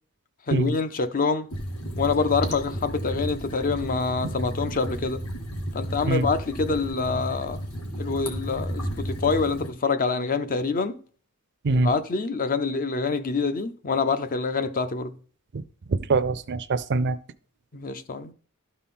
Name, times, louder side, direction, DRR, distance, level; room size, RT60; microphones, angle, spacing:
voice 1, 0.5-1.5 2.0-5.2 5.7-7.6 8.0-11.0 11.7-15.1 17.7-18.3, left 4 dB, 40° left, 0.5 m, -26 dB
sound 1, 1.5-9.7, equal, 75° left, 1.7 m, -33 dB
voice 2, 15.9-17.2, right 3 dB, 50° right, 0.5 m, -24 dB
12.5 x 4.3 x 3.7 m
head